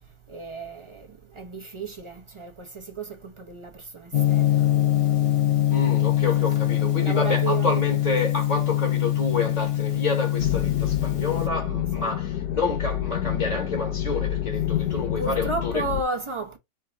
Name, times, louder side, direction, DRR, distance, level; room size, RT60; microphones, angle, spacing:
voice 1, 0.3-4.6 6.6-6.7 7.0-7.8 11.9-12.1 15.2-16.6, right 3 dB, 30° right, 0.5 m, -33 dB
Gong, 4.1-11.5, left 13 dB, 50° left, 0.7 m, -23 dB
voice 2, 5.7-15.8, left 3 dB, 30° left, 1.0 m, -29 dB
sound 1, 10.4-16.0, left 11 dB, 70° left, 1.1 m, -28 dB
4.5 x 2.4 x 4.4 m
omnidirectional pair, 1.7 m